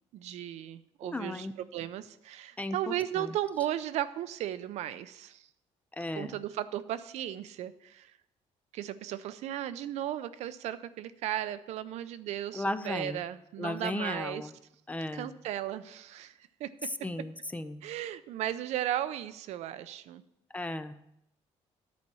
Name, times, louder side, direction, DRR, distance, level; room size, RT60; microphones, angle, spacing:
voice 1, 0.1-1.5 1.7-5.4 6.1-8.1 8.7-14.5 15.1-16.9 17.8-20.2, right 12 dB, 70° right, 13 dB, 0.5 m, -35 dB
voice 2, 1.0-1.5 2.6-3.4 5.9-6.4 12.5-13.2 13.6-14.5 14.9-15.3 17.0-17.8 20.5-21.0, left 2 dB, 10° left, 12 dB, 0.4 m, -35 dB
10.5 x 4.2 x 6.9 m, 0.80 s
cardioid pair, 135°, 12 cm